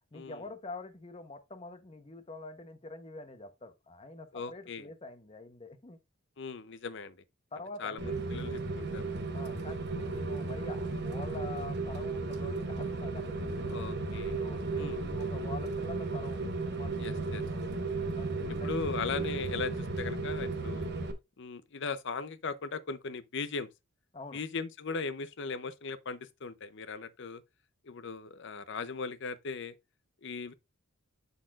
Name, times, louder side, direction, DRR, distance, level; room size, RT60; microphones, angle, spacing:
voice 1, 0.1-6.0 7.5-8.1 9.3-13.8 14.4-18.9 24.1-24.4, left 3 dB, 25° left, 0.9 m, -46 dB
voice 2, 4.3-4.9 6.4-7.2 7.8-9.1 13.7-14.4 14.8-15.0 17.0-17.4 18.6-20.9 21.4-23.7 24.3-27.4 27.8-29.7 30.2-30.5, left 4 dB, 60° left, 0.6 m, -38 dB
Rain, 8.0-21.1, right 3 dB, 50° right, 1.0 m, -34 dB
11.5 x 4.2 x 2.4 m
head